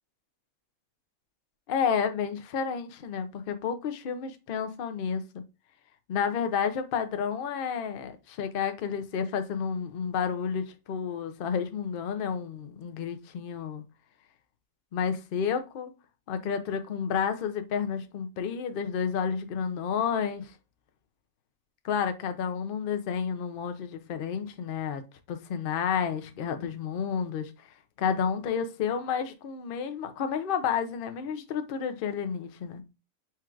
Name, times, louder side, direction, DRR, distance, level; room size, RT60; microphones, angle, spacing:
voice 1, 1.7-5.4 6.1-13.8 14.9-15.9 16.3-20.5 21.8-25.0 25.3-27.5 28.0-32.8, left 7 dB, 55° left, 0.7 m, -30 dB
4.5 x 2.4 x 4.4 m
omnidirectional pair, 1.4 m